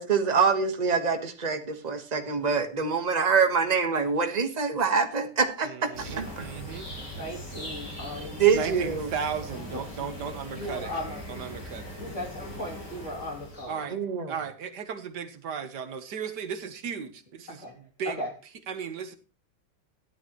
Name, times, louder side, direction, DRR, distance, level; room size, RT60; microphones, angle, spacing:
voice 1, 0.0-6.5 8.4-9.1 13.9-14.3, right 5 dB, 25° right, 6 dB, 1.2 m, -25 dB
voice 2, 5.6-6.9 8.5-10.9 11.3-12.0 13.7-14.0 14.3-18.2 18.7-19.2, right 7 dB, 60° right, 10 dB, 1.6 m, -35 dB
sound 1, 5.9-13.8, equal, 55° left, 7.4 m, -40 dB
voice 3, 7.1-8.7 9.7-10.1 10.5-11.2 12.0-13.9 17.5-17.8 18.0-18.3, left 1 dB, 35° left, -1 dB, 3.2 m, -37 dB
13.5 x 11.0 x 3.0 m, 0.32 s
omnidirectional pair, 2.2 m